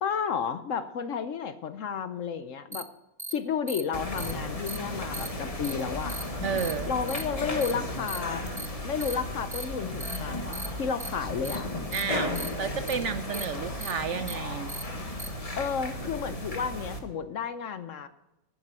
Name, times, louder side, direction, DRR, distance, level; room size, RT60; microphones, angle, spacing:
voice 1, 0.0-2.9 3.3-6.2 6.9-8.5 8.8-10.4 10.8-11.7 15.6-18.1, left 6 dB, 60° left, 11 dB, 1.0 m, -32 dB
sound 1, 2.7-2.8 3.2-3.3 3.7-3.8 4.2-4.3 4.7-4.8 5.1-5.3 5.6-5.7 6.1-6.2 6.6-6.7 7.1-7.2 7.6-7.7 8.1-8.2 8.6-8.7 9.0-9.1 9.5-9.6 10.0-10.2 10.5-10.7 11.0-11.1 11.4-11.6 11.9-12.0 12.4-12.5 12.9-13.0 13.3-13.5 13.8-13.9 14.3-14.4 14.7-14.8 15.2-15.3, right 2 dB, 15° right, 0.6 m, -37 dB
sound 2, 3.9-17.0, left 1 dB, 25° left, 1.3 m, -35 dB
voice 2, 6.4-6.9 11.9-14.7, right 6 dB, 65° right, 10 dB, 0.8 m, -32 dB
11.5 x 9.8 x 5.6 m, 0.93 s
omnidirectional pair, 1.6 m